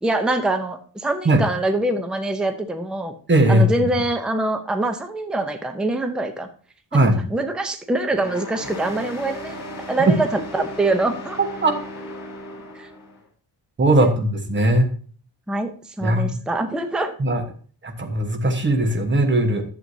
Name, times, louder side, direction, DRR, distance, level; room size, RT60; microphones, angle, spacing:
voice 1, 0.0-3.1 3.5-6.5 6.9-10.3 10.5-11.4 12.8-12.9 14.0-14.1 15.5-15.7 16.0-17.1, right 2 dB, ahead, 7 dB, 0.5 m, -24 dB
voice 2, 3.3-3.8 6.9-7.2 10.1-10.2 11.6-11.8 13.8-14.9 16.0-16.4 17.2-17.4 17.8-19.6, right 1 dB, 25° right, 5 dB, 1.2 m, -18 dB
sound 1, 8.1-13.2, left 1 dB, 50° left, 3.4 m, -36 dB
11.0 x 7.5 x 2.7 m, 0.43 s
wide cardioid pair, 175°, 42 cm